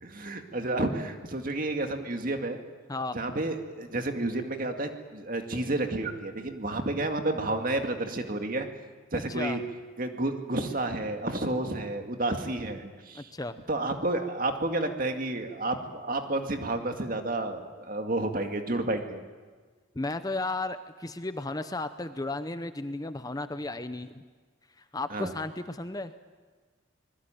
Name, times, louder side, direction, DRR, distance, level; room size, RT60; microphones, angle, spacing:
voice 1, 0.0-2.6 3.1-8.7 9.1-9.6 10.0-13.3 13.7-19.3 25.1-25.3, right 2 dB, 45° right, 5 dB, 2.2 m, -30 dB
voice 2, 13.1-13.5 19.9-24.2 24.8-26.1, left 2 dB, 20° left, 10 dB, 0.7 m, -34 dB
25.5 x 21.0 x 9.1 m, 1.4 s
head